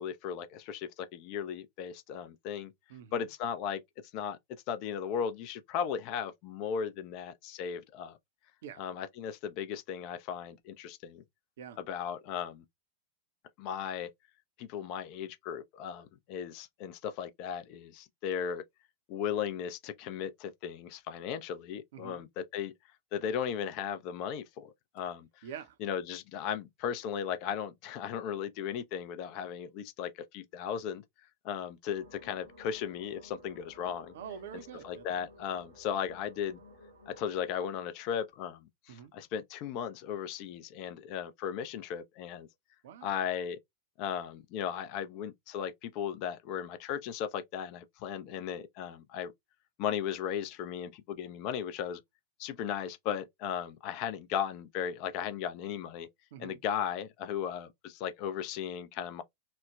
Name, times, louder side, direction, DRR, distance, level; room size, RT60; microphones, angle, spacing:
voice 1, 0.0-2.7 3.1-3.8 4.1-8.2 8.8-11.2 11.9-12.6 13.6-14.1 14.6-18.6 19.1-22.7 23.1-25.4 25.8-31.0 31.4-34.1 34.8-36.6 37.1-42.5 43.0-43.6 44.0-49.3 49.8-52.0 52.4-56.1 56.4-59.2, left 8 dB, 45° left, 0.4 m, -36 dB
voice 2, 2.9-3.3 8.6-8.8 11.6-11.8 21.9-22.3 25.4-25.8 34.1-35.0 38.9-39.1 42.8-43.1 56.3-56.6, right 8 dB, 55° right, 0.5 m, -45 dB
sound 1, 31.9-37.5, left 1 dB, 85° right, 1.2 m, -55 dB
3.1 x 2.1 x 2.2 m
figure-of-eight pair, 90°, 0 cm